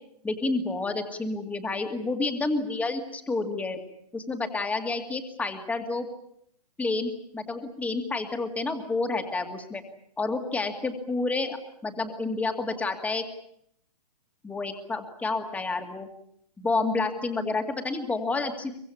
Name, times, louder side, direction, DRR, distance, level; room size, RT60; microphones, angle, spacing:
voice 1, 0.2-3.8 4.1-6.1 6.8-9.8 10.2-11.6 11.8-13.2 14.4-16.1 16.6-18.7, left 3 dB, 5° left, 6 dB, 2.3 m, -29 dB
24.0 x 21.5 x 8.6 m, 0.73 s
hypercardioid pair, 145°, 20 cm